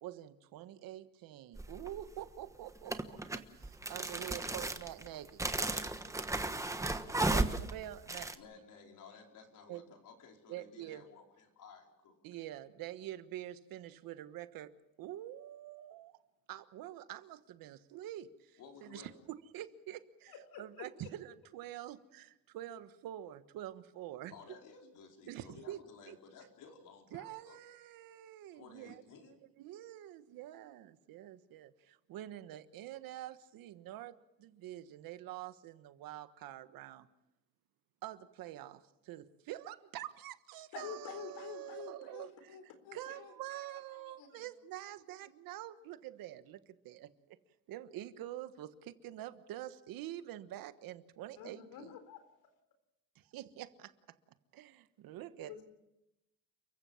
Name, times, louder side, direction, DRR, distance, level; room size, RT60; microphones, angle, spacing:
voice 1, 0.0-3.2 3.5-5.4 7.2-8.3 9.7-9.8 10.5-11.0 12.2-14.7 15.0-16.1 16.5-24.3 25.3-25.8 26.1-26.2 27.1-37.1 38.0-42.6 42.9-46.6 46.8-47.1 47.7-51.9 53.3-53.9 54.5-55.6, right 13 dB, 75° right, 11 dB, 1.4 m, -46 dB
sound 1, 1.6-2.0 2.9-8.3, right 2 dB, 10° right, 1.2 m, -34 dB
voice 2, 8.4-12.5 18.6-19.1 24.3-27.6 28.5-29.4, left 5 dB, 60° left, 2 dB, 4.8 m, -56 dB
voice 3, 20.3-20.9 40.7-44.5 51.4-52.2 55.4-55.6, left 7 dB, 90° left, 9 dB, 4.1 m, -49 dB
29.5 x 15.5 x 7.2 m, 0.90 s
cardioid pair, 140°, 34 cm